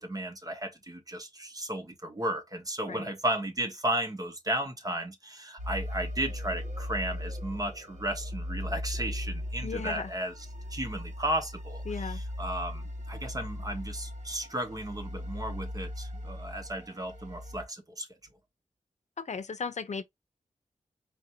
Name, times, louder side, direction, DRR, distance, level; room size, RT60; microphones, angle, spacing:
voice 1, 0.0-10.3 10.7-18.1, right 1 dB, 30° right, 1.2 m, -34 dB
sound 1, 5.6-17.6, left 1 dB, 70° right, 1.6 m, -38 dB
voice 2, 9.6-10.1 11.9-12.2 19.2-20.0, left 5 dB, 65° left, 0.7 m, -36 dB
4.5 x 2.8 x 2.7 m
wide cardioid pair, 105°, 13 cm